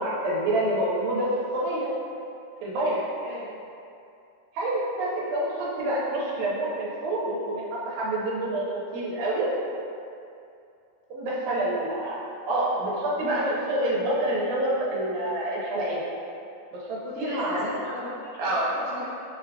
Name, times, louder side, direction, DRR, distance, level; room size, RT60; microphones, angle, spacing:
voice 1, 0.0-1.9 2.6-3.0 4.5-9.5 11.1-16.0 16.8-17.7 18.4-18.7, right 1 dB, 85° right, -6 dB, 2.1 m, -27 dB
voice 2, 17.0-19.1, left 1 dB, 85° left, -11 dB, 2.7 m, -37 dB
6.3 x 2.1 x 2.7 m, 2.6 s
omnidirectional pair, 3.3 m